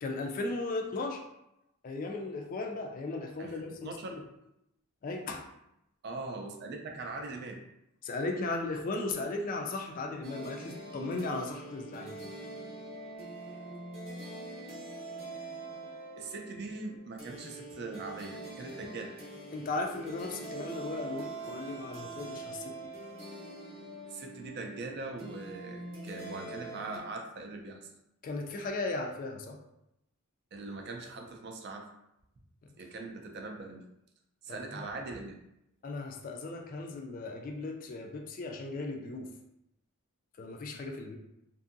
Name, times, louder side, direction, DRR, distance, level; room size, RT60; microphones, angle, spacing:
voice 1, 0.0-1.2 1.8-4.2 5.0-5.4 8.0-12.2 19.5-22.9 28.2-29.6 34.5-34.6 35.8-39.3 40.4-41.2, left 2 dB, 40° left, 2 dB, 0.3 m, -36 dB
voice 2, 3.4-4.1 6.0-7.6 16.2-19.1 24.1-27.8 30.5-31.8 32.8-33.8 34.4-35.4, right 3 dB, 50° right, 3 dB, 0.4 m, -41 dB
sound 1, 10.2-27.0, right 2 dB, 30° right, 0.8 m, -44 dB
2.6 x 2.6 x 2.5 m, 0.83 s
head